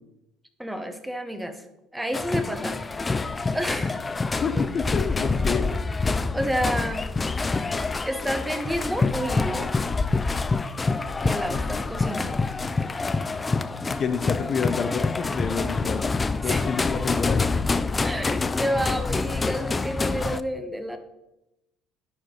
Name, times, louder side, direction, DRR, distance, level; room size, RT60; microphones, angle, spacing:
voice 1, 0.6-1.6 1.9-2.8 3.2-3.9 4.5-4.7 6.3-7.1 8.0-9.7 11.2-12.4 16.4-16.7 18.0-21.0, equal, 5° right, 7 dB, 0.9 m, -30 dB
sound 1, 2.1-20.4, left 3 dB, 20° left, 0.4 m, -26 dB
voice 2, 4.4-6.0 11.5-11.8 13.9-16.0 16.4-17.4, left 6 dB, 45° left, 8 dB, 0.7 m, -29 dB
9.8 x 4.6 x 3.9 m, 0.91 s
supercardioid pair, 85°, 0 cm